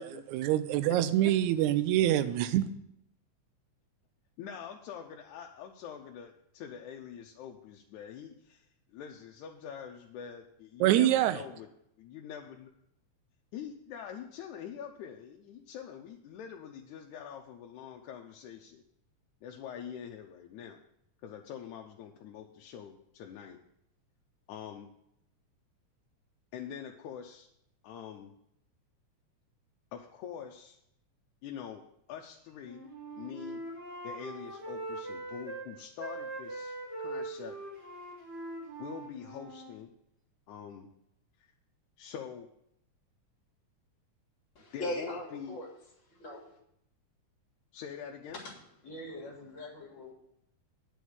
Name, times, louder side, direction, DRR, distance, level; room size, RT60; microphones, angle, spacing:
voice 1, 0.0-2.7 10.8-11.4, right 13 dB, 80° right, 1.9 m, -26 dB
voice 2, 4.4-11.7 12.0-12.7 13.5-18.8 19.4-20.8 21.2-23.6 24.5-24.9 26.5-27.5 27.8-28.3 29.9-30.8 31.4-31.8 32.1-32.8 33.2-33.6 34.0-37.6 38.8-39.9 40.5-40.9 41.4-41.5 42.0-42.5 44.7-45.6 47.7-48.4, left 8 dB, 80° left, 2.1 m, -45 dB
Wind instrument woodwind instrument, 32.6-35.7 36.0-39.8, right 2 dB, 40° right, 4.1 m, -41 dB
voice 3, 44.6-45.7 46.1-46.4 48.3-48.5 48.8-50.1, left 1 dB, 40° left, 2.4 m, -40 dB
9.3 x 4.9 x 7.8 m
omnidirectional pair, 3.5 m